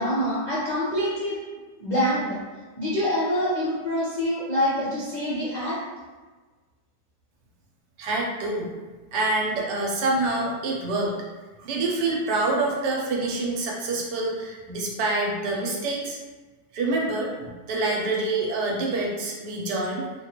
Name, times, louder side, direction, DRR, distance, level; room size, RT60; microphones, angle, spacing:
voice 1, 0.0-1.4 1.8-2.4 2.8-5.8, equal, 50° left, -10 dB, 0.5 m, -25 dB
voice 2, 8.0-8.7 9.1-11.1 11.6-16.2 16.7-20.1, right 2 dB, 85° right, -1 dB, 1.3 m, -26 dB
3.6 x 2.3 x 2.9 m, 1.3 s
omnidirectional pair, 1.8 m